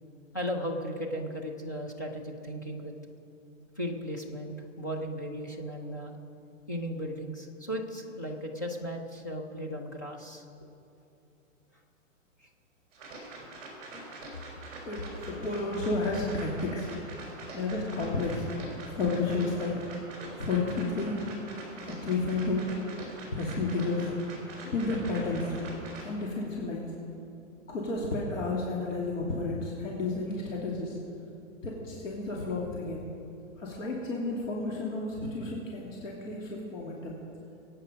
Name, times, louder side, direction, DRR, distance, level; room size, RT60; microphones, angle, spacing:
voice 1, 0.3-2.9 3.8-6.2 6.7-10.7 12.4-12.5, equal, 15° left, 1 dB, 0.5 m, -36 dB
sound 1, 12.9-26.1, right 2 dB, 20° right, 3.8 m, -44 dB
voice 2, 14.8-16.9 17.5-18.4 18.9-19.7 20.4-21.3 21.8-22.8 23.3-24.1 24.6-25.6 26.0-26.8 27.7-31.0 31.6-33.0 33.6-37.2, left 3 dB, 75° left, -3 dB, 2.7 m, -31 dB
23.0 x 9.0 x 5.1 m, 2.7 s
hypercardioid pair, 175°, 39 cm